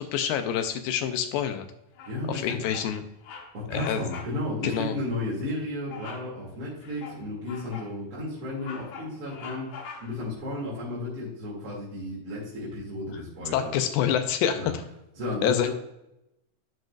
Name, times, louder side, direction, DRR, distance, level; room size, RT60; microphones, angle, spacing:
voice 1, 0.0-1.7 2.3-3.0 3.7-4.0 4.6-5.0 13.5-14.7 15.4-15.7, left 9 dB, 85° left, 8 dB, 2.0 m, -27 dB
Bird vocalization bird call bird song, 2.0-2.4 2.7-2.9 3.2-3.5 3.8-4.4 4.7-4.9 5.9-6.3 6.8-7.9 8.4-10.3, left 5 dB, 65° left, 2.2 m, -43 dB
voice 2, 2.1-2.6 3.5-13.7 14.6-14.7 15.2-15.7, left 1 dB, 45° right, -7 dB, 2.2 m, -33 dB
11.5 x 5.1 x 2.4 m, 0.87 s
omnidirectional pair, 4.4 m